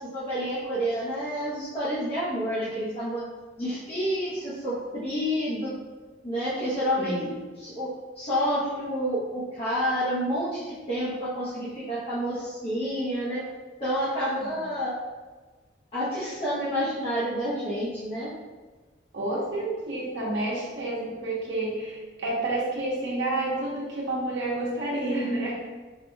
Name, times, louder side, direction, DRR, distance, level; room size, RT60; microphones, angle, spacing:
voice 1, 0.0-3.2 3.6-5.7 6.2-7.3 7.6-13.4 13.8-15.0 15.9-18.3, equal, 30° left, -11 dB, 0.9 m, -29 dB
voice 2, 7.0-7.3 14.4-14.5 19.1-25.7, right 2 dB, 70° right, -5 dB, 1.0 m, -29 dB
4.6 x 2.8 x 2.2 m, 1.3 s
head